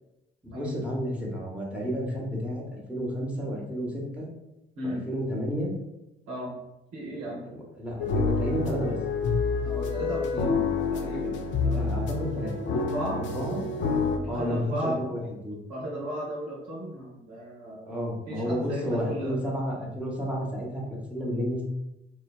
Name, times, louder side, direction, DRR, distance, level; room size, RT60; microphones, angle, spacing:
voice 1, 0.4-4.3 4.8-5.7 7.2-8.9 11.7-12.5 13.3-13.6 14.3-15.6 17.9-21.6, equal, 5° right, -3 dB, 0.8 m, -31 dB
voice 2, 6.3-6.6 6.9-7.5 9.6-10.6 10.9-11.9 12.7-13.2 14.1-15.0 15.7-17.9 18.3-19.4, right 1 dB, 60° right, -5 dB, 0.8 m, -35 dB
sound 1, 8.0-14.2, left 4 dB, 40° left, 0.4 m, -28 dB
3.2 x 2.2 x 2.3 m, 0.91 s
figure-of-eight pair, 45°, 32 cm